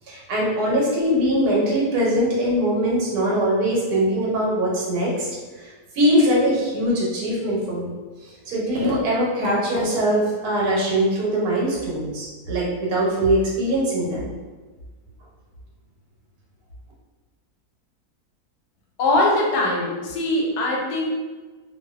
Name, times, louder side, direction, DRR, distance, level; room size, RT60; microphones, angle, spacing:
voice 1, 0.1-5.3 5.5-5.7 5.9-7.9 8.2-14.3, equal, 75° right, -4 dB, 1.2 m, -22 dB
voice 2, 19.0-21.1, left 2 dB, 90° left, -2 dB, 1.1 m, -21 dB
2.6 x 2.3 x 2.3 m, 1.3 s
omnidirectional pair, 1.7 m